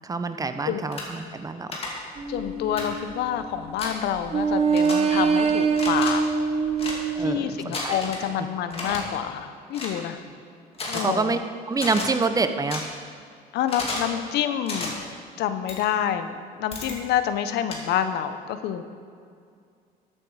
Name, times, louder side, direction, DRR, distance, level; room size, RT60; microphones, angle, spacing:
voice 1, 0.0-1.7 7.2-8.0 8.4-8.5 10.9-11.4 11.7-12.8, right 4 dB, 20° right, 9 dB, 0.7 m, -27 dB
sound 1, 0.9-1.0 1.7-1.9 2.8-2.9 3.8-3.9 4.7-5.0 5.7-6.1 6.8-7.0 7.7-8.2 8.7-9.0 9.7-10.0 10.7-11.0 11.7-12.1 12.7-12.8 13.7-14.1 14.7-14.9 15.7-15.8 16.7-17.0 17.7-17.8, left 3 dB, 35° left, 2.5 m, -32 dB
sound 2, 2.2-3.8 4.3-7.4, right 5 dB, 35° right, 1.1 m, -24 dB
voice 2, 2.3-6.2 7.2-10.2 10.9-11.4 13.5-15.0 15.4-16.3 16.6-18.8, left 10 dB, 80° left, 10 dB, 0.8 m, -27 dB
14.0 x 9.0 x 4.8 m, 2.3 s
cardioid pair, 110°, 17 cm